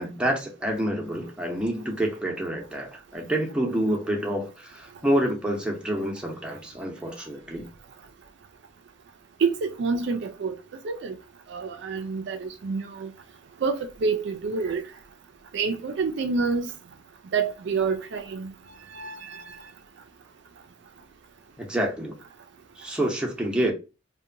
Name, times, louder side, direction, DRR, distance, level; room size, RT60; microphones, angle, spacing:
voice 1, 0.0-7.7 21.6-22.2 22.8-23.7, right 1 dB, 5° right, 0.6 m, -28 dB
voice 2, 9.4-10.5 10.8-11.2 11.5-13.1 13.6-14.9 15.5-16.7 17.3-18.5 18.9-19.6, right 4 dB, 60° right, 0.4 m, -28 dB
2.7 x 2.2 x 2.5 m
head